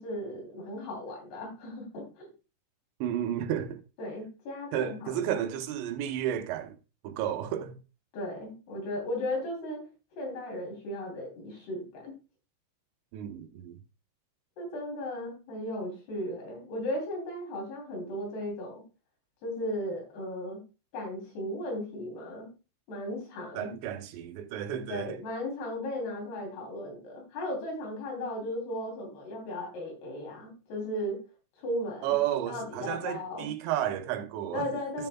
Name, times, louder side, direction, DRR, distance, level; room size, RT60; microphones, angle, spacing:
voice 1, 0.0-2.3 4.0-5.5 8.1-9.8 10.2-12.1 14.6-18.8 19.4-20.6 20.9-22.5 22.9-23.7 24.9-31.2 31.6-32.2 32.5-33.5 34.5-35.1, left 1 dB, 65° left, 5.2 m, -36 dB
voice 2, 3.0-3.8 4.7-6.8 7.0-7.8 13.1-13.8 23.5-25.2 32.0-34.7 35.0-35.1, right 11 dB, 80° right, 3.0 m, -32 dB
13.5 x 7.1 x 2.3 m
omnidirectional pair, 5.0 m